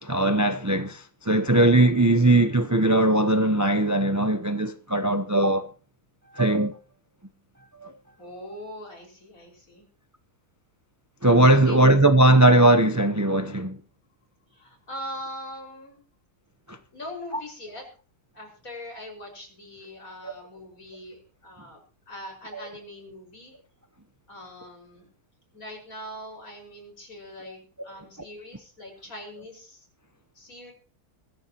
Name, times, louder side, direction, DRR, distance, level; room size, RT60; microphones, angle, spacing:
voice 1, 0.0-5.7 6.3-6.8 7.8-7.9 11.2-13.8 16.7-16.8 20.2-20.3 22.5-22.6, right 1 dB, 20° right, 0.5 m, -19 dB
voice 2, 8.2-9.9 11.5-11.8 14.5-16.0 16.9-17.8 18.3-23.6 24.3-25.1 25.5-29.9 30.3-30.7, left 1 dB, 60° left, 6.0 m, -41 dB
22.0 x 14.5 x 3.0 m
omnidirectional pair, 1.6 m